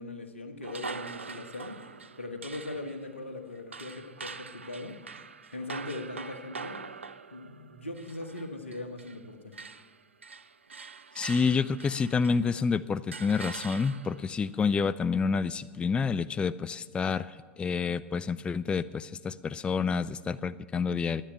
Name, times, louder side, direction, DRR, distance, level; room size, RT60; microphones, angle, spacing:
voice 1, 0.0-1.8 2.2-5.0 5.5-6.8 7.3-9.5, left 2 dB, 85° left, 6 dB, 1.3 m, -40 dB
sound 1, 0.6-9.3 9.5-12.6 13.1-14.3, right 4 dB, 85° right, 0.4 m, -44 dB
voice 2, 11.2-21.2, left 5 dB, 15° left, 14 dB, 0.3 m, -28 dB
10.0 x 10.0 x 9.1 m, 1.5 s
figure-of-eight pair, 90°, 6 cm